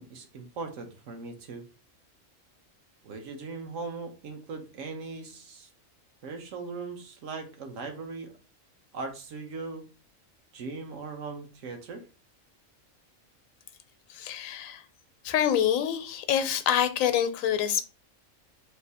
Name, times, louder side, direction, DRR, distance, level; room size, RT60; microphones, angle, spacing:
voice 1, 0.0-1.6 3.0-5.7 6.2-8.3 8.9-9.8 10.5-12.0, right 4 dB, 70° right, 1.2 m, -39 dB
voice 2, 14.1-14.8 15.2-17.8, left 9 dB, 85° left, 1.0 m, -26 dB
3.8 x 2.7 x 4.1 m
omnidirectional pair, 1.4 m